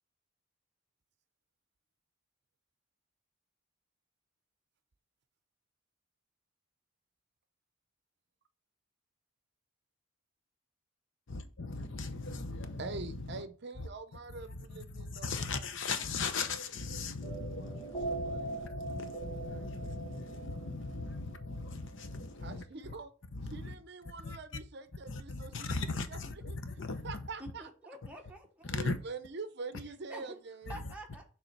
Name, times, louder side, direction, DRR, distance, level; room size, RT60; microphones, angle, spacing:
voice 1, 11.3-13.4 13.8-13.9 14.5-22.9 23.3-23.7 24.2-24.4 25.1-27.2 28.6-29.0 30.7-30.9, left 3 dB, 60° left, 0.8 m, -38 dB
voice 2, 12.8-15.4 22.4-23.1 23.5-25.7 26.1-26.2 26.5-26.6 27.0-27.7 28.7-30.8, right 3 dB, 50° right, 0.6 m, -44 dB
sound 1, 17.2-22.1, right 3 dB, 15° left, 1.4 m, -41 dB
voice 3, 27.4-28.7 30.1-30.4 30.7-31.2, right 1 dB, 5° right, 1.1 m, -48 dB
6.6 x 3.7 x 4.5 m
head